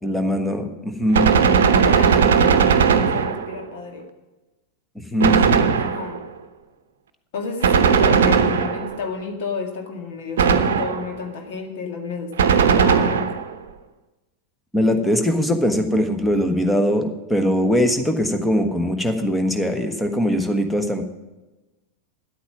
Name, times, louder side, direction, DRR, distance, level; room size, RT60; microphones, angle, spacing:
voice 1, 0.0-1.3 4.9-5.7 14.7-21.0, equal, 5° left, 6 dB, 1.2 m, -21 dB
Gunshot gunfire, 1.1-3.6 5.2-6.3 7.6-9.1 10.4-11.2 12.4-13.5, right 6 dB, 60° right, 0.8 m, -17 dB
voice 2, 1.6-2.6 3.1-4.1 5.8-6.2 7.3-13.3, left 4 dB, 50° left, 4 dB, 1.9 m, -30 dB
10.5 x 8.6 x 6.0 m, 1.1 s
figure-of-eight pair, 90°, 0 cm